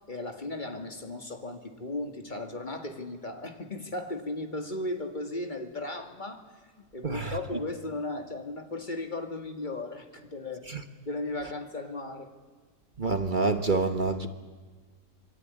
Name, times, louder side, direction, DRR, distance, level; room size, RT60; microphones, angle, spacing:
voice 1, 0.1-6.5 6.9-10.6 11.1-12.3, left 2 dB, 25° left, 5 dB, 2.2 m, -36 dB
voice 2, 7.0-7.4 10.7-10.8 13.0-14.3, right 3 dB, 35° right, 8 dB, 1.1 m, -27 dB
26.5 x 22.0 x 9.8 m, 1.5 s
omnidirectional pair, 1.8 m